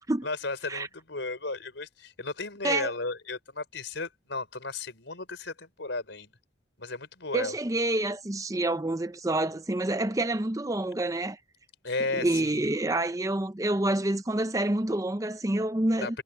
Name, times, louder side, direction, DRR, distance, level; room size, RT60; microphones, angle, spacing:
voice 1, 0.2-6.3 6.8-7.6 11.8-12.6 16.0-16.2, left 3 dB, 70° left, 4.3 m, -34 dB
voice 2, 7.3-11.4 12.1-16.2, right 1 dB, 15° right, 0.7 m, -28 dB
head